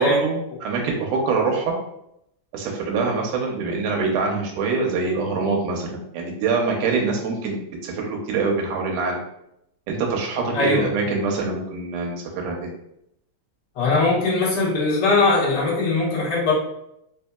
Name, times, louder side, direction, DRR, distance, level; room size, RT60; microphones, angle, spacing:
voice 1, 0.0-1.7 2.5-9.2 9.9-12.7, right 4 dB, 85° right, 0 dB, 2.2 m, -24 dB
voice 2, 10.5-10.9 13.7-16.5, left 3 dB, 60° left, -6 dB, 1.1 m, -20 dB
4.7 x 2.7 x 2.3 m, 0.78 s
omnidirectional pair, 3.6 m